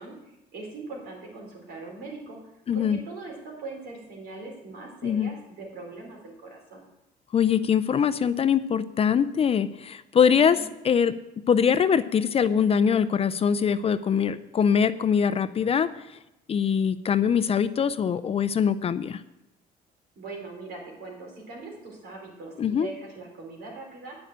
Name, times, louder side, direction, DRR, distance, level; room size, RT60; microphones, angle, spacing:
voice 1, 0.0-2.4 2.7-6.8 10.3-10.7 20.2-24.2, right 3 dB, 70° right, 0 dB, 4.3 m, -41 dB
voice 2, 2.7-3.0 5.0-5.3 7.3-11.1 11.5-15.9 16.5-19.2 22.6-22.9, left 7 dB, 35° left, 13 dB, 0.5 m, -23 dB
9.6 x 6.6 x 8.7 m, 0.94 s
cardioid pair, 110°, 17 cm